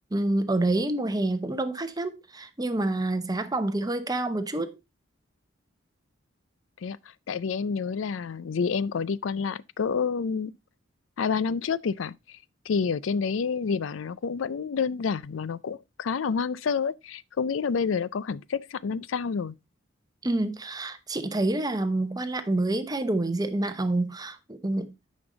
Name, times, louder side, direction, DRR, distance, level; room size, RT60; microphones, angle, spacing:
voice 1, 0.1-4.8 20.2-25.1, right 2 dB, 20° right, 0.9 m, -28 dB
voice 2, 7.3-10.5 11.2-12.4 12.7-19.5, left 5 dB, 85° left, 0.4 m, -28 dB
9.6 x 5.3 x 3.8 m
head